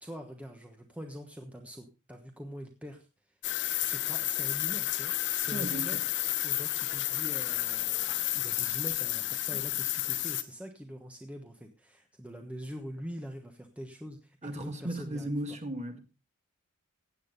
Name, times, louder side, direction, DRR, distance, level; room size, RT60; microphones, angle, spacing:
voice 1, 0.0-3.1 3.8-6.0 6.4-15.6, equal, 5° right, 1.2 m, -44 dB
sound 1, 3.4-10.4, left 14 dB, 55° left, 0.9 m, -31 dB
voice 2, 5.5-6.0 14.4-16.0, right 1 dB, 30° right, 2.0 m, -36 dB
16.0 x 8.6 x 4.0 m
head